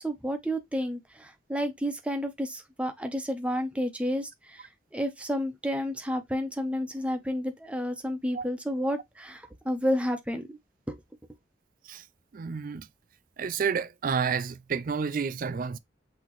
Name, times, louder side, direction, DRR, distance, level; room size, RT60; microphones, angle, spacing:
voice 1, 0.0-4.6 4.9-10.6 10.9-11.0, equal, 5° right, 0.7 m, -31 dB
voice 2, 12.3-12.9 13.4-15.8, right 6 dB, 50° right, 0.4 m, -30 dB
6.0 x 2.9 x 3.0 m
head